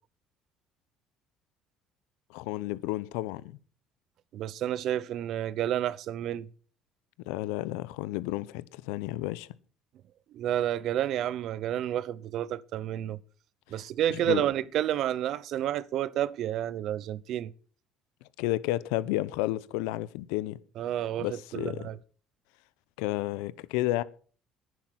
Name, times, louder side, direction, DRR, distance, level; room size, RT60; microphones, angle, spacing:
voice 1, 2.3-3.5 7.3-9.5 14.1-14.4 18.4-20.6 21.2-21.9 23.0-24.0, left 17 dB, 90° left, 0.8 m, -31 dB
voice 2, 4.3-6.5 10.3-13.2 13.7-17.5 20.8-22.0, right 11 dB, 65° right, 0.8 m, -30 dB
11.0 x 10.0 x 7.5 m
supercardioid pair, 90°, 0 cm